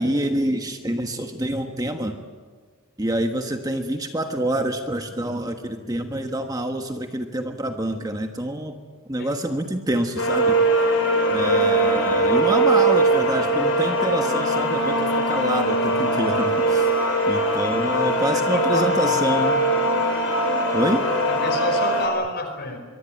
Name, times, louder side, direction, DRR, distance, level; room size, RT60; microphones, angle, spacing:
voice 1, 0.0-2.2 3.0-8.7 9.1-10.6 11.3-16.9 17.3-19.6 20.7-21.0, right 1 dB, 15° right, 5 dB, 1.4 m, -26 dB
sound 1, 10.2-22.1, right 1 dB, 65° left, 6.2 m, -21 dB
voice 2, 18.3-19.2 21.3-22.8, left 2 dB, 45° left, 6 dB, 4.8 m, -29 dB
24.0 x 23.5 x 9.2 m, 1.5 s
head